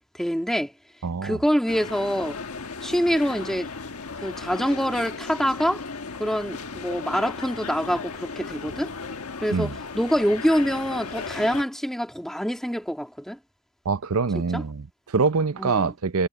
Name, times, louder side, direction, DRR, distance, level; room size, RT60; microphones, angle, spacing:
voice 1, 0.1-0.7 1.2-2.4 2.8-3.7 4.2-5.8 6.2-8.9 9.4-13.4 14.3-14.6 15.6-15.9, equal, ahead, 2.0 m, -25 dB
voice 2, 1.0-1.4 9.5-9.8 13.8-16.3, right 4 dB, 80° right, 0.6 m, -25 dB
sound 1, 1.7-11.6, left 4 dB, 90° left, 1.4 m, -36 dB
head